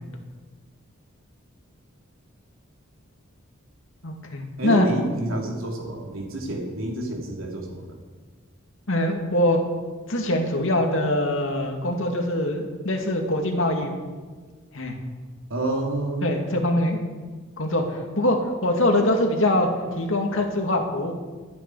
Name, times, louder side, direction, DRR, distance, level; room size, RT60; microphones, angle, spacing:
voice 1, 4.0-4.9 8.9-9.6 10.1-13.9 14.7-15.0 16.2-17.0 17.6-19.7 19.9-21.1, left 1 dB, 70° left, 2 dB, 2.3 m, -23 dB
voice 2, 4.6-8.0 15.5-16.3, right 1 dB, 80° right, 0 dB, 3.3 m, -28 dB
24.5 x 9.4 x 4.9 m, 1.4 s
head